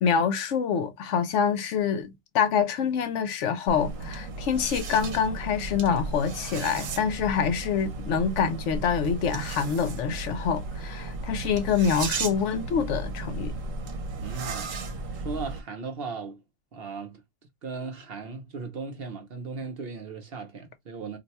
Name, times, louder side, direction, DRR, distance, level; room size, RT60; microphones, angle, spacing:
voice 1, 0.0-13.5, left 7 dB, 70° left, 0.8 m, -26 dB
sound 1, 3.7-15.6, right 3 dB, 75° right, 1.1 m, -35 dB
voice 2, 14.2-16.4 16.7-17.2 17.6-21.2, right 4 dB, 55° right, 0.8 m, -37 dB
2.6 x 2.2 x 4.0 m
omnidirectional pair, 1.4 m